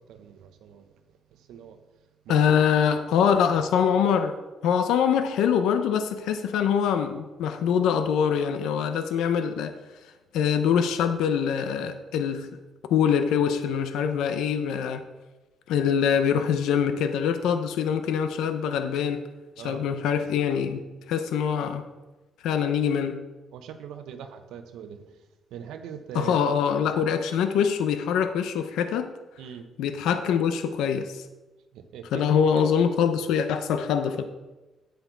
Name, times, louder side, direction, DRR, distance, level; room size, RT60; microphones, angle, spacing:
voice 1, 0.1-0.8 1.5-1.8 2.3-2.5 19.6-19.9 23.5-25.0 25.5-26.4 29.4-29.7 31.7-32.2, right 8 dB, 85° right, 0.9 m, -41 dB
voice 2, 2.3-4.3 4.6-9.7 10.3-12.5 12.9-15.1 15.7-19.2 19.6-20.8 21.1-21.8 22.4-23.2 26.1-29.1 29.8-31.2 32.1-34.2, left 7 dB, 85° left, 0.7 m, -24 dB
9.5 x 8.0 x 4.7 m
cardioid pair, 90°, 0 cm